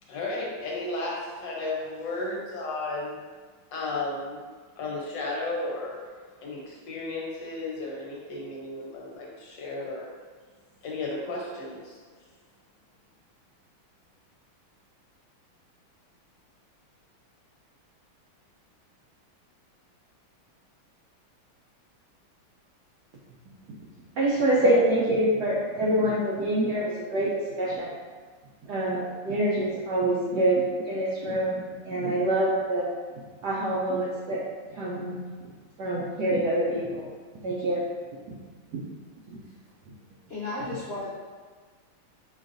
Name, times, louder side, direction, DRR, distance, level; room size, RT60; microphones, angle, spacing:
voice 1, 0.1-3.2 3.7-4.4 4.8-10.1 10.8-12.0, left 2 dB, 70° left, -3 dB, 1.2 m, -34 dB
voice 2, 24.2-27.3 27.6-27.9 28.6-32.9 33.4-34.4 34.7-35.2 35.8-37.1 37.4-37.9 38.3-38.4 38.7-38.8 39.3-39.4, right 1 dB, 75° right, -5 dB, 0.9 m, -26 dB
voice 3, 40.3-41.1, left 2 dB, 50° left, -10 dB, 0.7 m, -33 dB
6.2 x 3.1 x 2.5 m, 1.5 s
omnidirectional pair, 2.4 m